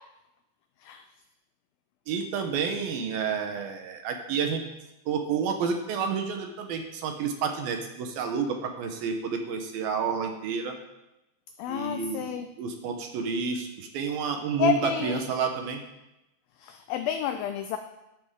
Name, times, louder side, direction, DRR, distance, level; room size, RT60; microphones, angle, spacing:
voice 1, 2.1-4.6 5.1-10.8 11.7-15.8, right 6 dB, 70° right, 5 dB, 2.7 m, -30 dB
voice 2, 11.6-12.5 14.6-15.2 16.6-17.8, left 9 dB, 80° left, 8 dB, 2.2 m, -29 dB
12.0 x 11.0 x 3.7 m, 0.93 s
omnidirectional pair, 4.7 m